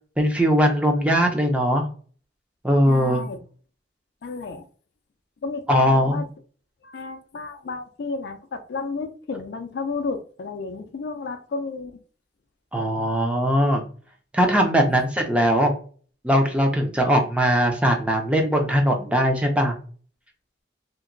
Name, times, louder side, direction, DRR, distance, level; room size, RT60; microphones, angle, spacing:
voice 1, 0.2-1.9 2.6-3.3 5.7-6.2 12.7-13.8 14.3-15.7 16.2-19.8, equal, 5° right, 0.4 m, -20 dB
voice 2, 2.9-3.4 4.2-4.7 5.4-6.2 6.8-12.0, left 4 dB, 60° left, 0.4 m, -32 dB
2.8 x 2.5 x 2.5 m
head